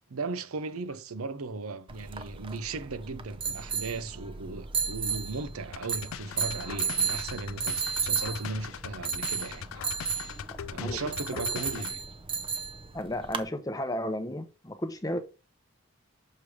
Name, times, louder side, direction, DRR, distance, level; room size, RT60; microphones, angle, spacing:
voice 1, 0.1-9.8 10.7-12.0, right 3 dB, 85° right, 0.7 m, -37 dB
sound 1, 1.9-13.5, right 6 dB, 25° right, 0.5 m, -34 dB
sound 2, 5.7-11.9, left 8 dB, 75° left, 0.4 m, -41 dB
voice 2, 11.3-11.8 12.9-15.2, left 1 dB, 15° left, 0.7 m, -34 dB
6.6 x 3.3 x 4.8 m
head